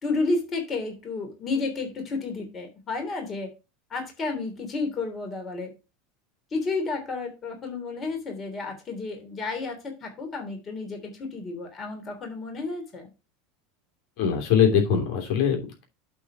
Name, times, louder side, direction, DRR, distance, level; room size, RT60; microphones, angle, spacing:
voice 1, 0.0-3.5 3.9-5.7 6.5-13.1, left 3 dB, 30° left, 4 dB, 3.0 m, -31 dB
voice 2, 14.2-15.8, left 7 dB, 60° left, 2 dB, 3.0 m, -22 dB
8.4 x 4.0 x 5.9 m, 0.28 s
hypercardioid pair, 100°, 0 cm